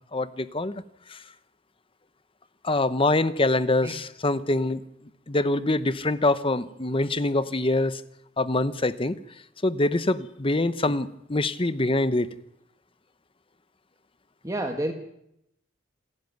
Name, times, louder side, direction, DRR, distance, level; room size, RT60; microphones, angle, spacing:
voice 1, 0.1-0.8 1.1-1.2 2.6-4.8 5.3-8.0 8.4-9.2 9.6-12.3, left 2 dB, 30° left, 13 dB, 1.0 m, -24 dB
voice 2, 14.4-14.9, right 1 dB, 15° right, 4 dB, 1.5 m, -29 dB
28.0 x 11.0 x 9.5 m, 0.79 s
head